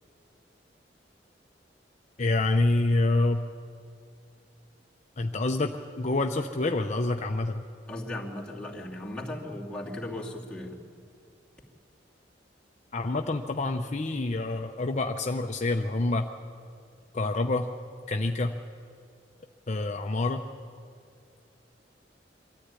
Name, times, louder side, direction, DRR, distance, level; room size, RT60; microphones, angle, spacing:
voice 1, 2.2-3.4 5.2-7.6 12.9-16.3 17.1-17.7 18.1-18.5 19.7-20.4, left 2 dB, 40° left, 4 dB, 0.7 m, -27 dB
voice 2, 7.9-10.8, left 1 dB, 5° left, -4 dB, 2.5 m, -37 dB
23.5 x 13.5 x 9.8 m, 2.3 s
head